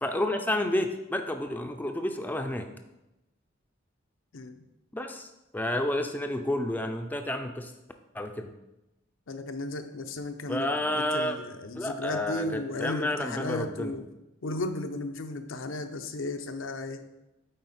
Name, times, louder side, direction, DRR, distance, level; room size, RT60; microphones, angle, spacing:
voice 1, 0.0-2.7 4.9-5.3 5.5-7.7 8.1-8.5 10.5-11.4 11.8-13.9, left 1 dB, 10° left, 5 dB, 0.4 m, -30 dB
voice 2, 4.3-4.7 9.3-14.1 14.4-17.0, left 2 dB, 85° left, 7 dB, 0.7 m, -35 dB
8.8 x 4.3 x 4.2 m, 0.94 s
head